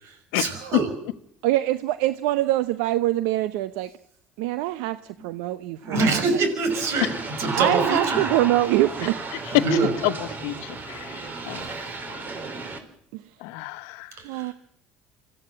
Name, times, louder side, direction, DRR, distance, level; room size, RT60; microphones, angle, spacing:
voice 1, 0.0-0.9 5.8-8.3 9.5-9.9 11.4-11.8 14.2-14.5, right 3 dB, 65° right, 5.9 m, -25 dB
voice 2, 1.4-3.9 4.4-6.2 7.5-9.3 13.1-13.2 14.2-14.5, right 15 dB, 80° right, 0.7 m, -24 dB
sound 1, 6.7-12.8, right 3 dB, 40° right, 4.0 m, -33 dB
voice 3, 10.4-11.6 12.1-12.2 13.4-14.1, left 20 dB, 80° left, 1.0 m, -31 dB
25.5 x 14.5 x 7.5 m
supercardioid pair, 85°, 5 cm